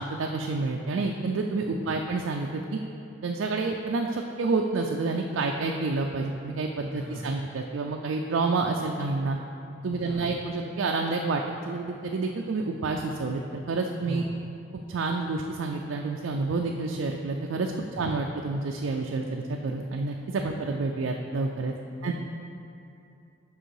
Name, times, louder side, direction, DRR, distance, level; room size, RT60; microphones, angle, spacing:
voice 1, 0.0-2.8 3.2-9.4 9.8-14.2 14.9-21.7 22.0-22.1, right 3 dB, 75° right, 2 dB, 0.4 m, -29 dB
voice 2, 6.9-7.4 10.0-10.4 14.1-14.4 17.9-18.2 21.9-22.1, left 1 dB, 15° left, -4 dB, 0.4 m, -41 dB
6.5 x 5.5 x 4.6 m, 2.6 s
head